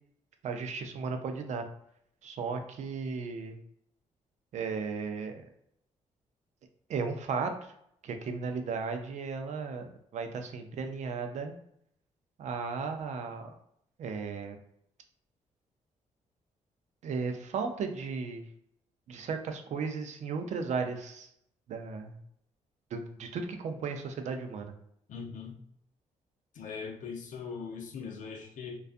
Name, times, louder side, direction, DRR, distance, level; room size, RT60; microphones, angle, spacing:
voice 1, 0.4-1.7 2.2-3.6 4.5-5.4 6.9-7.7 8.0-11.5 12.4-13.5 14.0-14.6 17.0-18.5 19.1-21.3 21.7-22.2 22.9-24.7, right 5 dB, 65° right, 6 dB, 0.4 m, -35 dB
voice 2, 25.1-25.6 26.5-28.8, left 5 dB, 70° left, 3 dB, 0.6 m, -40 dB
2.4 x 2.3 x 2.4 m, 0.72 s
cardioid pair, 75°, 13 cm